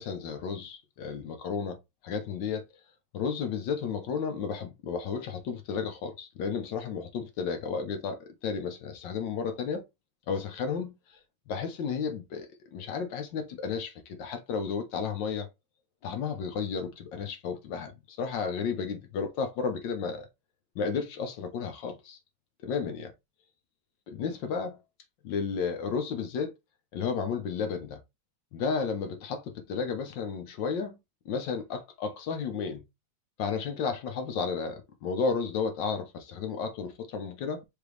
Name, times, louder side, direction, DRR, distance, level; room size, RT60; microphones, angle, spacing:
voice 1, 0.0-1.8 2.0-2.6 3.1-9.8 10.3-10.9 11.5-15.5 16.0-20.3 20.7-22.2 22.6-23.1 24.1-24.8 25.2-26.5 26.9-28.0 28.5-31.0 31.2-32.8 33.4-37.6, left 5 dB, 65° left, 1.4 m, -33 dB
5.0 x 2.9 x 3.2 m
omnidirectional pair, 2.4 m